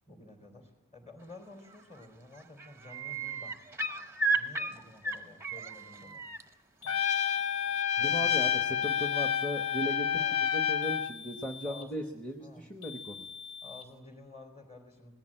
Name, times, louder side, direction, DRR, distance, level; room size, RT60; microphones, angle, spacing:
voice 1, 0.1-3.6 4.3-6.3 6.8-7.1 8.0-8.4 8.7-8.9 10.1-10.5 11.6-12.1 12.4-12.7 13.6-15.1, left 2 dB, 30° left, 5 dB, 4.1 m, -51 dB
sound 1, 1.7-2.0 2.3-6.4 8.1-8.2, right 3 dB, 10° right, 0.8 m, -34 dB
sound 2, 6.8-7.9 8.8-9.9 10.8-12.0 12.8-13.9, left 6 dB, 65° left, 2.4 m, -47 dB
Trumpet, 6.9-11.1, left 9 dB, 80° left, 0.7 m, -29 dB
voice 2, 8.0-13.3, right 1 dB, 5° left, 3 dB, 1.0 m, -37 dB
19.0 x 15.5 x 8.9 m, 1.0 s
head